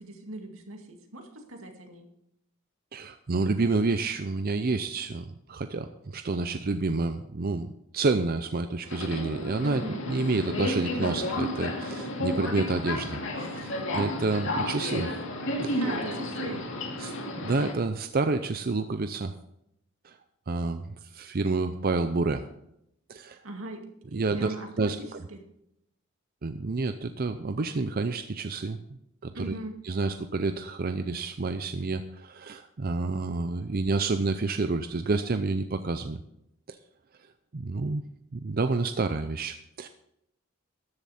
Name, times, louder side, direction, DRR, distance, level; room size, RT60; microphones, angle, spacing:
voice 1, 0.0-2.1 9.6-10.0 15.8-16.7 23.4-23.8 24.1-25.5 29.3-29.7, right 1 dB, 80° right, 3 dB, 2.2 m, -40 dB
voice 2, 2.9-7.7 7.9-15.1 15.6-15.8 17.0-17.1 17.4-19.3 20.0-20.1 20.5-22.4 23.1-23.4 24.1-25.0 26.4-28.8 29.2-29.5 29.8-36.2 36.7-36.8 37.5-38.0 38.3-39.9, right 3 dB, 45° right, 9 dB, 0.6 m, -29 dB
Subway metro underground, 8.8-17.7, left 1 dB, 65° left, 2.4 m, -32 dB
13.5 x 10.5 x 4.3 m, 0.79 s
head